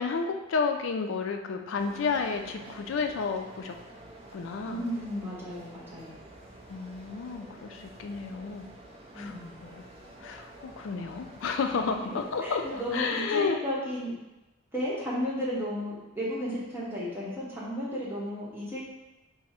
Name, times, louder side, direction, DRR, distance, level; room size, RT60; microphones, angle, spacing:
voice 1, 0.0-3.7 4.3-4.8 6.7-8.7 9.1-9.3 9.6-9.8 10.2-13.6, left 5 dB, 65° left, 5 dB, 0.3 m, -31 dB
sound 1, 1.8-13.1, right 1 dB, 30° right, 0.4 m, -49 dB
voice 2, 4.7-6.1 9.1-9.6 11.7-12.1 12.4-14.1 14.7-18.8, equal, 10° right, -8 dB, 0.8 m, -34 dB
3.4 x 2.0 x 4.2 m, 0.99 s
head